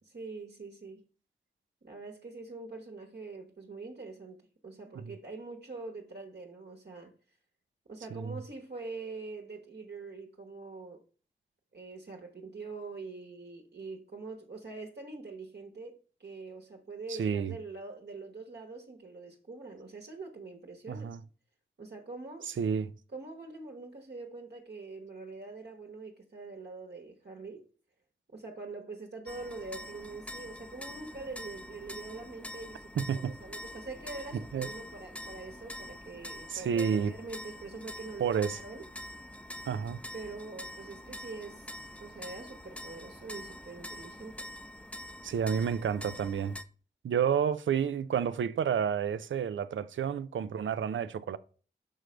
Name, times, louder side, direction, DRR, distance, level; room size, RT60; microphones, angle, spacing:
voice 1, 0.1-1.0 1.8-7.1 7.9-11.0 11.7-21.1 21.8-22.5 23.1-27.6 28.3-38.8 40.1-44.4, right 3 dB, 60° right, 1.2 m, -44 dB
voice 2, 17.1-17.5 20.9-21.2 22.6-22.9 33.0-33.3 34.5-34.7 36.5-37.1 38.2-38.6 39.7-40.0 45.2-46.6 47.0-51.4, right 7 dB, 80° right, 0.4 m, -30 dB
sound 1, 29.3-46.6, equal, 5° left, 0.5 m, -45 dB
6.3 x 3.3 x 5.0 m
cardioid pair, 45°, 19 cm